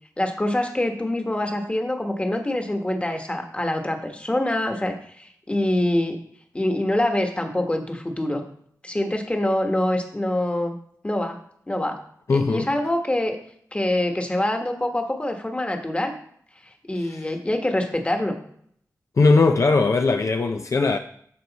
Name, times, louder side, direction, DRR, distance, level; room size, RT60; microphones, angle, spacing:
voice 1, 0.2-6.2 6.5-8.4 8.8-10.7 11.0-11.4 11.7-12.0 12.3-13.4 13.7-16.1 16.9-18.4, left 1 dB, 20° left, 1.3 m, -25 dB
voice 2, 12.3-12.7 17.0-17.3 19.2-21.0, left 3 dB, 55° left, 0.5 m, -19 dB
13.0 x 4.7 x 4.1 m
wide cardioid pair, 120°, 6 cm